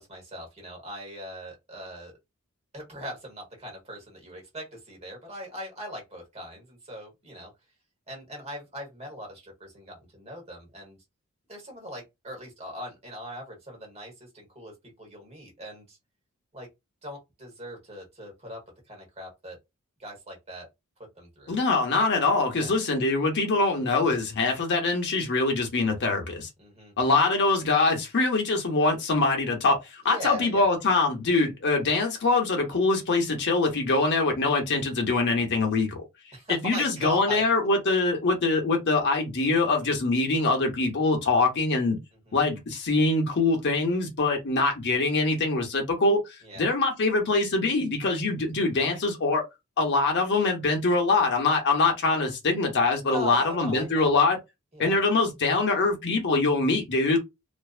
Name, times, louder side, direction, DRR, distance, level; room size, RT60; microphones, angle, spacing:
voice 1, 0.0-2.2 2.7-7.5 8.1-11.0 11.5-16.0 16.5-16.7 17.0-19.6 20.0-20.7 21.2-21.6 22.5-22.8 26.6-26.9 30.0-30.6 36.3-37.4 42.3-42.4 46.4-46.7 53.0-54.1 54.7-55.0, equal, 30° right, 1.2 m, -40 dB
voice 2, 21.5-26.5 27.0-36.0 36.5-42.0 42.3-49.5 49.8-54.4 54.8-57.2, left 3 dB, 55° left, 0.8 m, -24 dB
2.5 x 2.2 x 2.4 m
head